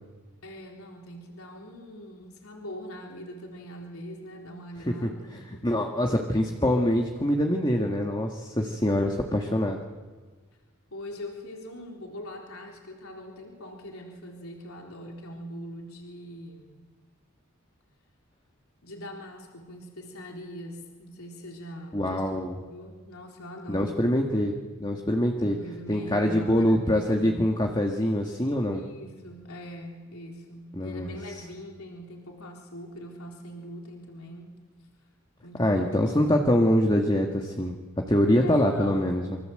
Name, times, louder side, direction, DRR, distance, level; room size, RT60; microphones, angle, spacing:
voice 1, 0.4-5.8 8.6-8.8 10.9-16.8 18.8-22.3 22.7-24.1 25.4-27.3 28.7-34.6 35.4-36.0 38.4-39.2, equal, 80° left, 0 dB, 3.9 m, -42 dB
voice 2, 5.6-9.8 21.9-22.6 23.7-24.5 24.8-25.6 25.9-28.8 30.7-31.4 35.6-37.7 38.1-39.4, left 1 dB, 20° left, 2 dB, 2.0 m, -24 dB
28.0 x 25.5 x 7.9 m, 1.4 s
head